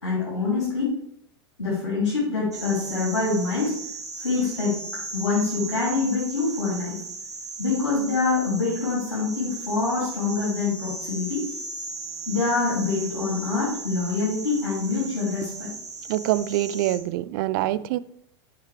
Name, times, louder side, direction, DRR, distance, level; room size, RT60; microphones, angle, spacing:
voice 1, 0.0-1.0 1.6-3.8 4.1-4.7 5.1-7.0 7.6-11.4 12.3-15.7, left 4 dB, 80° left, -8 dB, 3.0 m, -25 dB
sound 1, 2.5-17.0, right 3 dB, 75° right, 1.9 m, -37 dB
voice 2, 16.1-18.0, right 14 dB, 50° right, 16 dB, 0.4 m, -25 dB
10.5 x 5.7 x 3.3 m, 0.71 s
figure-of-eight pair, 85°, 14 cm